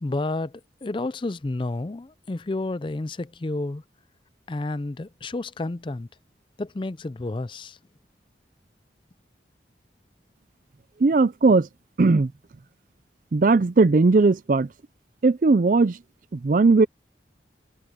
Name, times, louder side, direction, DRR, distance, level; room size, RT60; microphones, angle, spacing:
voice 1, 0.0-3.8 4.5-6.1 6.6-7.8, left 2 dB, 30° left, 0.4 m, -30 dB
voice 2, 11.0-11.7 12.0-12.3 13.3-14.7 15.2-16.0 16.3-16.9, right 3 dB, 45° right, 0.4 m, -18 dB
head